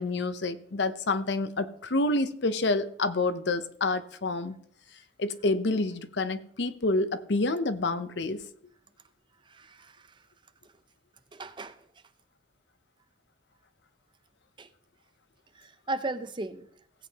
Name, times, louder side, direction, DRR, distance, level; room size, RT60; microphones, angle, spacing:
voice 1, 0.0-4.6 5.2-8.4, left 2 dB, 65° left, 0.7 m, -28 dB
voice 2, 9.5-10.0 11.3-11.8 14.6-14.7 15.6-16.7, right 2 dB, 25° right, 0.5 m, -36 dB
17.0 x 8.6 x 2.9 m
head